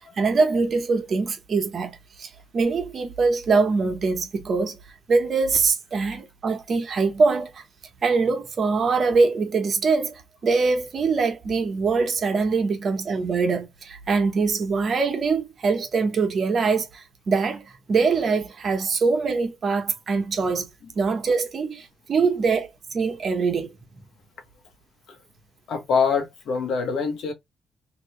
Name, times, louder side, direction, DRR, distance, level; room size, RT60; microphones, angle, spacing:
voice 1, 0.0-1.9 2.2-4.8 5.1-7.6 8.0-20.7 20.9-23.8, right 4 dB, 50° right, 1.0 m, -23 dB
voice 2, 25.7-27.3, left 5 dB, 70° left, 1.1 m, -24 dB
2.9 x 2.7 x 3.1 m
cardioid pair, 90°, 0 cm